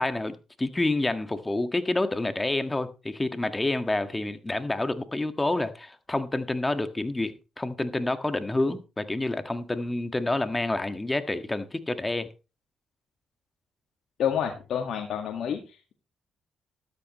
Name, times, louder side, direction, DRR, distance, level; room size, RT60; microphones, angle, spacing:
voice 1, 0.0-12.3, left 2 dB, 20° left, 1.7 m, -28 dB
voice 2, 14.2-15.9, left 8 dB, 70° left, 1.9 m, -29 dB
13.5 x 12.5 x 3.1 m
supercardioid pair, 65°, 0 cm